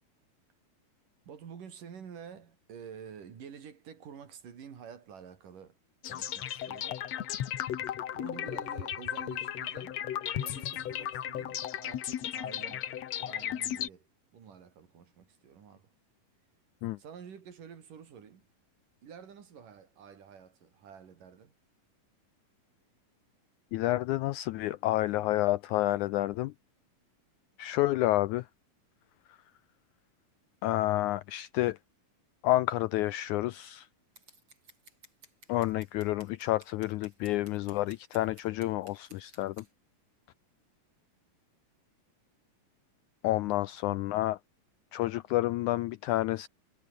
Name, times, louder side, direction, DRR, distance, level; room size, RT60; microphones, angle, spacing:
voice 1, 1.3-5.8 6.1-7.0 7.8-10.0 10.3-12.9 13.2-15.9 17.0-18.5 19.0-21.5 43.4-43.7, right 7 dB, 70° right, 4.5 m, -49 dB
sound 1, 6.0-13.9, left 11 dB, 60° left, 2.2 m, -35 dB
voice 2, 23.7-26.5 27.6-28.5 30.6-31.8 32.4-33.9 35.5-39.7 43.2-44.4 44.9-46.5, left 16 dB, 80° left, 1.8 m, -29 dB
Scissors, 34.2-39.7, right 3 dB, 35° right, 8.6 m, -57 dB
omnidirectional pair, 4.0 m